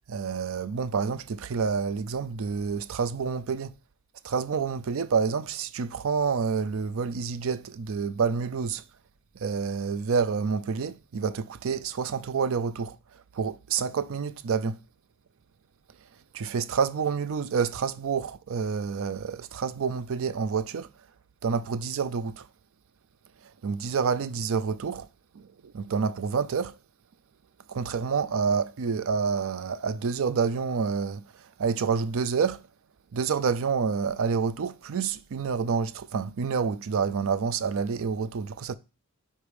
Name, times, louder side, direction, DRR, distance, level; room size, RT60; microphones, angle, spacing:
voice 1, 0.1-3.7 4.2-8.8 9.4-13.0 13.3-14.8 16.3-20.9 21.4-22.5 23.6-25.1 25.3-26.7 27.7-31.2 31.6-32.7 33.1-38.8, right 5 dB, 65° right, 0.4 m, -28 dB
4.8 x 4.3 x 5.1 m
head